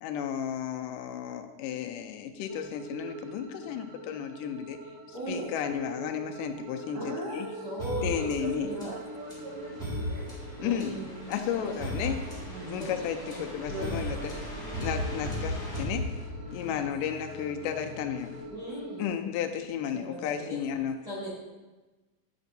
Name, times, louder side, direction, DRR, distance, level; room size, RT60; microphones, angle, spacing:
voice 1, 0.0-4.8 5.3-7.5 8.0-8.7 10.6-11.0 11.3-12.2 12.6-14.3 14.8-16.1 16.5-18.3 19.0-21.0, left 9 dB, 80° left, 6 dB, 2.1 m, -33 dB
sound 1, 2.5-19.1, right 1 dB, 80° right, 2.7 m, -43 dB
voice 2, 5.1-5.5 7.6-8.3 8.6-8.9 10.6-11.3 12.0-12.2 12.8-13.4 18.5-19.0 19.9-20.6 21.0-21.3, right 1 dB, 30° right, -10 dB, 2.5 m, -38 dB
voice 3, 6.9-7.6 8.1-11.0 12.5-12.9 13.7-14.3 16.6-17.0, equal, 65° right, -6 dB, 1.5 m, -41 dB
sound 2, 7.8-16.6, left 1 dB, ahead, 1.4 m, -37 dB
sound 3, 13.6-18.4, equal, 65° left, 2.0 m, -44 dB
9.1 x 6.0 x 2.7 m, 1.2 s
omnidirectional pair, 3.9 m